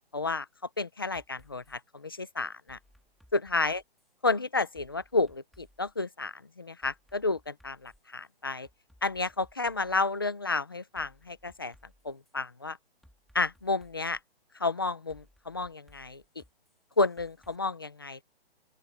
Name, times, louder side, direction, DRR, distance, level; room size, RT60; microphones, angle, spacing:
voice 1, 0.1-0.5 0.8-2.8 3.3-3.8 4.2-8.7 9.0-11.7 12.0-12.8 13.3-14.2 14.6-16.4 17.0-18.2, left 3 dB, 20° left, 0.6 m, -31 dB
sound 1, 1.1-1.8 2.7-4.1 4.7-5.9 6.8-8.1 8.6-10.1 11.0-12.3 13.0-14.2 15.1-17.6, left 1 dB, ahead, 1.8 m, -62 dB
open air
hypercardioid pair, 180°, 32 cm